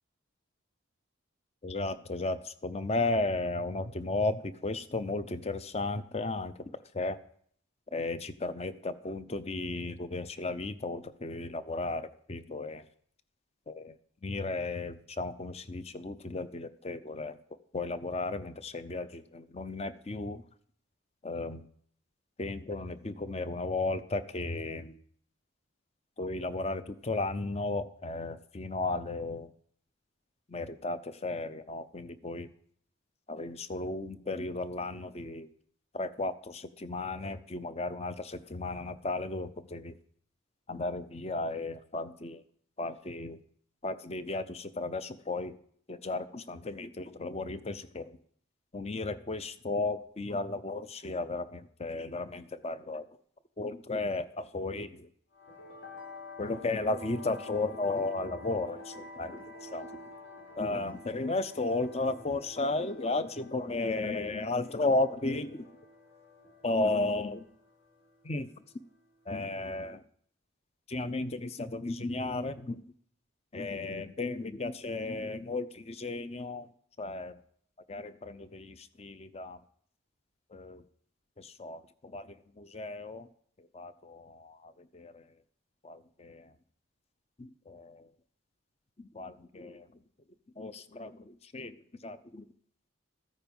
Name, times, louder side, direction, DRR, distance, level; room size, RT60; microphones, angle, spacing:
voice 1, 1.6-6.5 6.9-7.2 7.9-12.8 13.7-13.9 14.2-17.4 17.7-20.4 21.2-21.7 22.4-25.0 26.2-29.5 30.5-32.5 33.3-35.5 35.9-40.0 40.7-42.4 42.8-43.4 43.8-45.6 45.9-48.2 48.7-53.1 53.6-55.1 56.4-59.9 60.6-65.7 66.6-67.4 68.2-68.5 69.3-70.0 70.9-72.8 73.5-76.7 77.0-77.4 77.9-79.6 80.5-80.8 81.4-83.3 83.6-85.3 85.8-86.5 87.4-88.1 89.0-89.9 90.6-91.8 92.0-92.4, left 2 dB, 30° left, 13 dB, 0.6 m, -34 dB
sound 1, 55.3-69.4, left 2 dB, 70° left, 4.3 m, -49 dB
14.0 x 9.3 x 5.4 m, 0.62 s
head